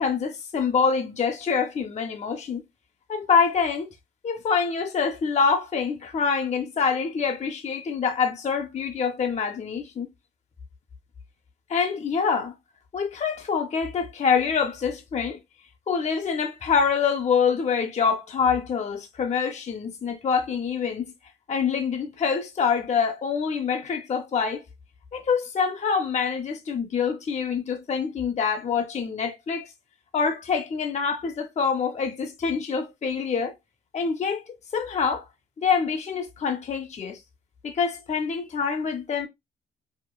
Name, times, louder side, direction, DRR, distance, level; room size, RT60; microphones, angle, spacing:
voice 1, 0.0-2.6 3.1-3.9 4.2-10.1 11.7-12.5 12.9-15.4 15.9-21.1 21.5-24.6 25.1-29.7 30.1-33.5 33.9-35.2 35.6-37.2 37.6-39.3, left 6 dB, 35° left, 0.6 m, -25 dB
4.9 x 2.2 x 2.2 m
cardioid pair, 90°, 20 cm